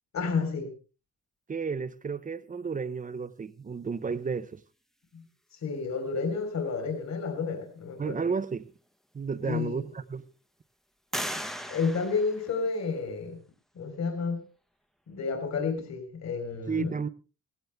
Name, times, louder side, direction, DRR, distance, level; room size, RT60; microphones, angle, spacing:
voice 1, 0.1-0.7 5.1-5.2 5.6-8.2 9.4-9.8 11.7-13.4 13.7-14.4 15.1-16.9, left 5 dB, 55° left, 3.8 m, -31 dB
voice 2, 1.5-4.6 8.0-8.7 9.1-10.2 16.7-17.1, right 5 dB, 25° right, 0.7 m, -32 dB
sound 1, 8.9-9.0 9.5-10.2 11.1-13.1, equal, ahead, 0.9 m, -38 dB
17.5 x 16.5 x 3.4 m
wide cardioid pair, 165°, 31 cm